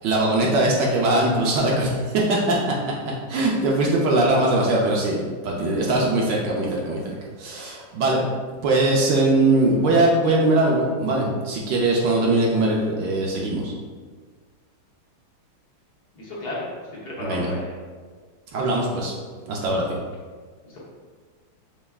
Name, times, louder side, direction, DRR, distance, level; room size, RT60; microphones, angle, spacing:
voice 1, 0.0-2.8 3.3-8.2 8.6-13.7 17.2-17.5 18.5-19.1 19.5-20.0, right 2 dB, 70° right, -2 dB, 1.3 m, -21 dB
voice 2, 16.2-17.8 20.6-20.8, left 2 dB, 55° left, -6 dB, 1.4 m, -33 dB
6.9 x 3.3 x 2.4 m, 1.5 s
omnidirectional pair, 2.2 m